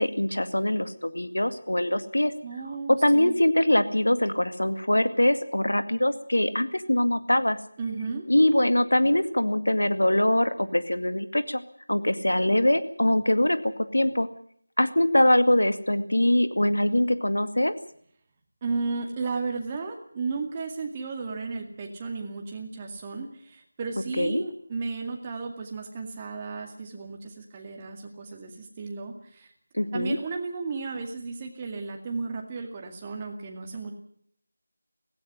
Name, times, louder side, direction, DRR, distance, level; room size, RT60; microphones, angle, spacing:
voice 1, 0.0-2.3 3.0-7.6 8.3-11.6 11.9-13.6 13.9-14.3 14.8-17.7 24.2-24.4 29.7-30.2, left 1 dB, 80° left, 11 dB, 2.0 m, -23 dB
voice 2, 2.4-3.4 7.8-8.3 18.6-29.5 29.9-33.9, right 4 dB, 20° right, 2 dB, 2.2 m, -34 dB
17.5 x 16.0 x 10.0 m, 0.63 s
figure-of-eight pair, 165°, 0 cm